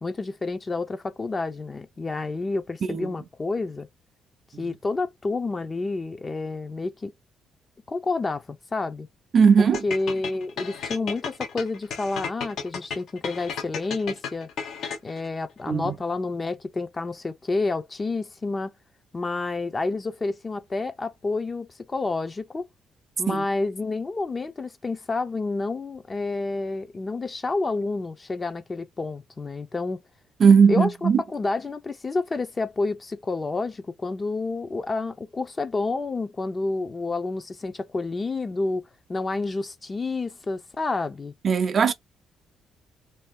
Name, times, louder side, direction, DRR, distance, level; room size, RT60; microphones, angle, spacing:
voice 1, 0.0-3.9 4.6-7.1 7.9-9.1 9.6-14.5 15.0-18.7 19.1-22.7 23.2-30.0 30.7-38.8 39.1-41.3, left 3 dB, 30° left, 0.6 m, -29 dB
voice 2, 9.3-9.8 15.7-15.9 23.3-23.4 30.4-31.2 41.4-41.9, right 6 dB, 50° right, 0.4 m, -18 dB
sound 1, 9.7-15.3, left 6 dB, 75° left, 0.9 m, -33 dB
2.7 x 2.5 x 3.5 m
cardioid pair, 90°, 0 cm